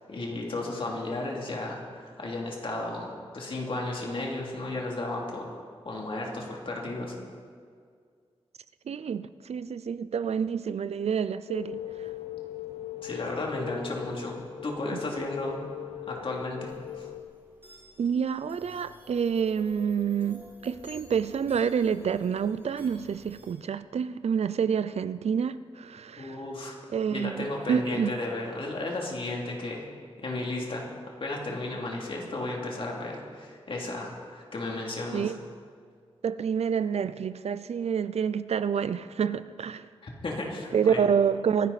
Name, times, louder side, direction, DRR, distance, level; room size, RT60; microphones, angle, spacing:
voice 1, 0.1-5.6 5.8-7.1 13.0-15.6 16.1-17.1 26.2-26.8 27.1-29.9 30.2-30.9 31.2-35.3 40.0-41.0, left 2 dB, 55° left, 2.9 m, -34 dB
voice 2, 8.9-12.1 18.0-26.4 26.9-28.1 35.1-35.4 36.2-39.9 40.7-41.7, right 7 dB, 90° right, 0.5 m, -28 dB
sound 1, 11.5-17.2, left 13 dB, 75° left, 0.7 m, -40 dB
sound 2, 16.7-23.5, left 1 dB, 20° right, 4.8 m, -51 dB
25.0 x 11.0 x 4.2 m
wide cardioid pair, 140°, 11 cm